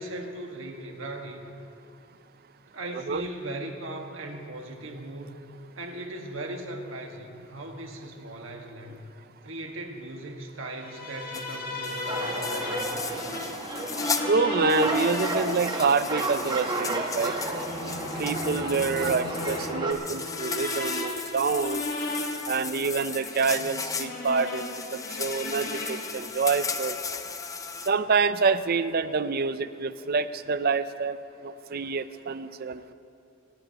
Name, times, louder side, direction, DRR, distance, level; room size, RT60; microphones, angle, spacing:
voice 1, 0.0-1.5 2.7-5.4 5.8-9.0 9.4-13.1, right 1 dB, 75° right, 2 dB, 1.6 m, -38 dB
sound 1, 10.8-26.3, left 2 dB, 45° left, 1.5 m, -35 dB
sound 2, 11.3-11.6 11.8-14.3 14.6-27.9, left 5 dB, 15° left, 0.5 m, -36 dB
sound 3, 12.1-19.9, right 2 dB, 20° right, 1.2 m, -33 dB
voice 2, 14.3-17.4 18.2-21.8 22.5-24.7 24.9-27.0 27.8-31.2 31.4-32.9, right 4 dB, 50° right, 13 dB, 0.5 m, -27 dB
26.0 x 14.0 x 2.9 m, 2.7 s
head